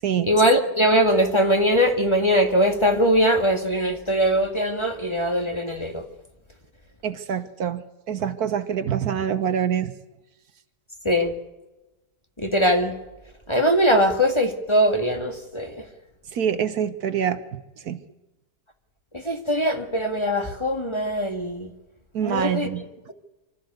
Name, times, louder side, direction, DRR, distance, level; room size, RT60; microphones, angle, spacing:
voice 1, 0.3-6.0 11.1-11.4 12.4-13.0 13.5-15.7 19.1-21.7 22.2-22.7, equal, 15° left, 5 dB, 1.8 m, -21 dB
voice 2, 7.0-9.9 16.3-18.0 22.1-22.8, right 8 dB, 65° right, 12 dB, 1.5 m, -26 dB
25.5 x 13.5 x 9.4 m, 1.0 s
omnidirectional pair, 1.8 m